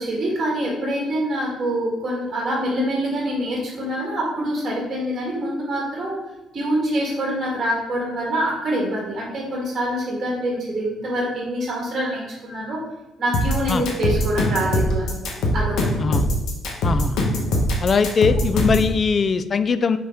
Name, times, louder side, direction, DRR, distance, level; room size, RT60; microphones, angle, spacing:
voice 1, 0.0-6.2 6.5-12.8 13.2-15.2 15.5-15.9, right 1 dB, 35° right, -3 dB, 1.8 m, -25 dB
sound 1, 13.3-18.9, left 1 dB, 75° left, 1.4 m, -21 dB
voice 2, 16.8-17.2 17.8-20.0, left 5 dB, 35° left, 12 dB, 0.4 m, -20 dB
5.6 x 4.2 x 4.9 m, 1.0 s
cardioid pair, 110°, 0 cm